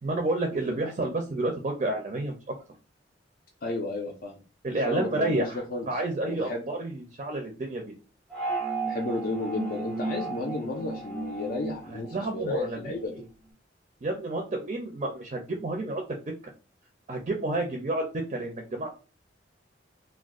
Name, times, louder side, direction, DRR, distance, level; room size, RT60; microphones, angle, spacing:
voice 1, 0.0-2.5 4.6-5.6 5.9-7.9 11.9-13.2 14.0-16.3 17.1-18.9, right 2 dB, 40° right, 2 dB, 0.5 m, -30 dB
voice 2, 3.6-4.4 4.8-5.9 6.2-6.7 8.9-13.1, left 2 dB, 50° left, -1 dB, 0.4 m, -32 dB
sound 1, 8.3-12.9, right 3 dB, 5° left, 0.6 m, -34 dB
2.4 x 2.2 x 3.5 m, 0.35 s
head